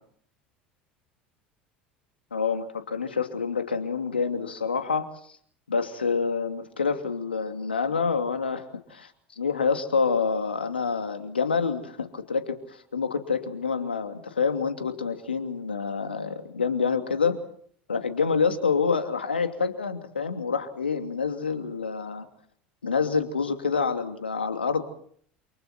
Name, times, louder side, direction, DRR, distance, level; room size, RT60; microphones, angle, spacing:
voice 1, 2.3-5.1 5.7-9.1 9.4-17.4 17.9-22.3 22.8-24.9, left 5 dB, 85° left, 7 dB, 2.8 m, -27 dB
29.0 x 28.5 x 4.4 m, 0.62 s
figure-of-eight pair, 70°, 5 cm